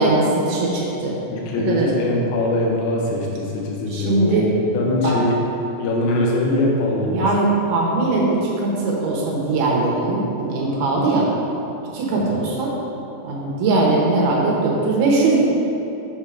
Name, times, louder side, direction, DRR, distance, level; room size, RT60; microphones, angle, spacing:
voice 1, 0.0-1.2 1.7-1.9 3.9-4.5 5.0-5.2 7.0-11.3 11.9-12.7 13.2-15.4, right 3 dB, 75° right, -3 dB, 2.7 m, -20 dB
voice 2, 1.3-5.4 5.8-7.3 12.3-12.4, left 2 dB, 85° left, -2 dB, 1.6 m, -22 dB
7.4 x 4.5 x 4.9 m, 2.9 s
omnidirectional pair, 4.9 m